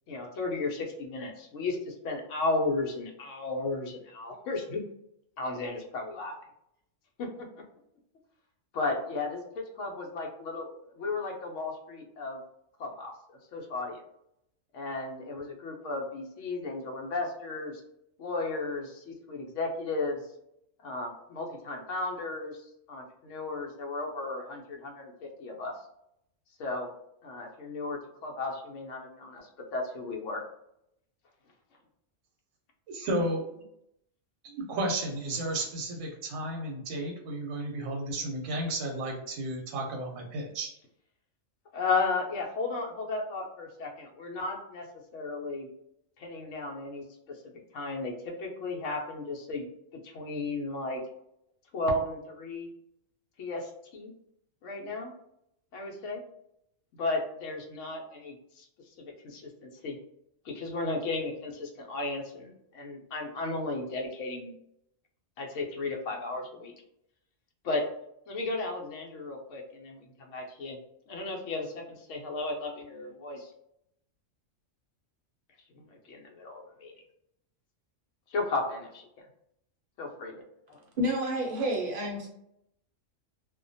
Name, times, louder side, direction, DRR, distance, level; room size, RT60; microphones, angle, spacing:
voice 1, 0.1-4.8 5.4-6.3 7.2-7.3 8.7-10.7 10.9-12.4 12.8-13.1 13.5-14.0 14.7-17.8 18.2-20.2 20.8-25.7 26.6-26.9 27.2-30.4 41.7-44.9 45.1-45.7 46.2-47.0 47.7-49.7 50.0-51.0 51.7-52.7 53.4-54.1 54.6-55.1 55.7-56.2 57.0-58.7 59.0-60.0 60.4-64.5 65.4-66.7 67.6-67.8 68.3-70.8 71.1-73.5 75.7-76.9 78.3-79.1 80.0-80.4 80.7-80.8, left 3 dB, 70° left, 0 dB, 0.9 m, -34 dB
voice 2, 32.9-33.6 34.4-40.7, right 1 dB, 90° right, 1 dB, 1.0 m, -33 dB
voice 3, 81.0-82.3, equal, 50° right, -1 dB, 0.7 m, -29 dB
2.4 x 2.1 x 2.6 m, 0.78 s
omnidirectional pair, 1.4 m